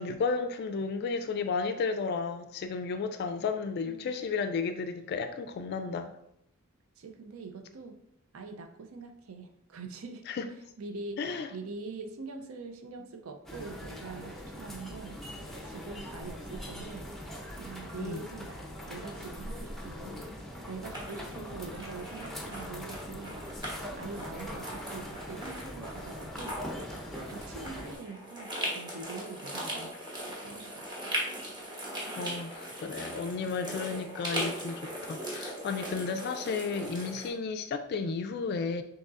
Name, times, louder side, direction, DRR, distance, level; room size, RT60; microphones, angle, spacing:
voice 1, 0.0-6.1 10.3-10.5 11.2-11.5 18.0-18.2 20.0-20.2 32.2-38.8, left 4 dB, 50° left, 7 dB, 0.3 m, -33 dB
voice 2, 3.8-4.2 7.0-8.0 8.3-10.2 10.8-15.2 15.6-17.1 17.5-20.1 20.7-26.6 27.1-31.0, right 4 dB, 75° right, 5 dB, 0.5 m, -44 dB
sound 1, 13.4-27.9, equal, ahead, 0.6 m, -42 dB
sound 2, 20.9-23.8 24.1-37.3, equal, 20° right, 1.0 m, -39 dB
6.3 x 2.8 x 2.5 m, 0.77 s
head